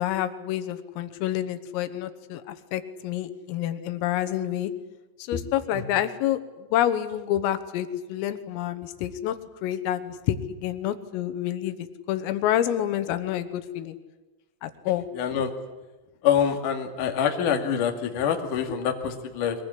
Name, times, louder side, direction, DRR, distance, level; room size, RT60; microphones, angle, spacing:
voice 1, 0.0-4.7 5.2-14.0 14.6-15.1, left 12 dB, 85° left, 10 dB, 3.9 m, -28 dB
voice 2, 15.1-15.5 16.2-19.6, left 8 dB, 50° left, 4 dB, 3.1 m, -25 dB
23.5 x 21.0 x 10.0 m, 1.1 s
omnidirectional pair, 5.9 m